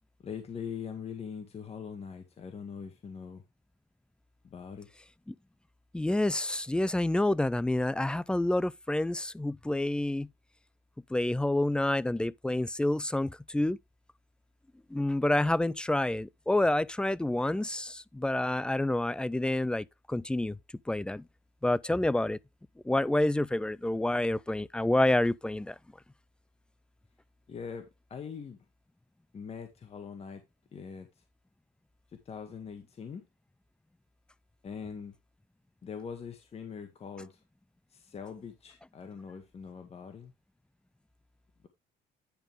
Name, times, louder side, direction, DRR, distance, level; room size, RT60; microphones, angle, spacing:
voice 1, 0.2-3.4 4.4-4.9 27.5-28.6 29.3-30.4 30.7-31.1 32.3-33.2 34.6-35.1 35.8-37.4 37.9-40.3, left 6 dB, 35° left, 1.7 m, -42 dB
voice 2, 5.9-10.3 11.1-13.8 14.9-20.6 20.9-21.2 21.6-22.4 22.9-25.7, left 1 dB, 5° left, 0.4 m, -28 dB
10.5 x 5.2 x 3.6 m
cardioid pair, 110°, 17 cm